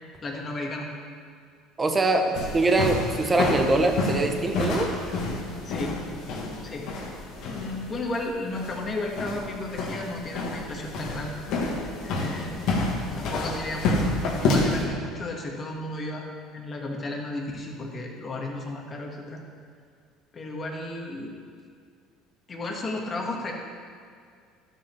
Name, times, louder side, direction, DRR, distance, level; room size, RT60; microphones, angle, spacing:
voice 1, 0.2-0.9 2.2-2.5 5.6-6.0 6.6-6.9 7.5-11.7 12.0-12.6 13.1-16.3 16.5-19.4 20.3-21.3 22.5-23.5, left 2 dB, 35° left, 0 dB, 1.7 m, -34 dB
voice 2, 1.8-4.9, right 2 dB, 20° right, 5 dB, 1.1 m, -23 dB
sound 1, 2.4-14.8, left 2 dB, 65° left, 1.7 m, -29 dB
12.5 x 5.9 x 4.5 m, 2.2 s
supercardioid pair, 95°, 0 cm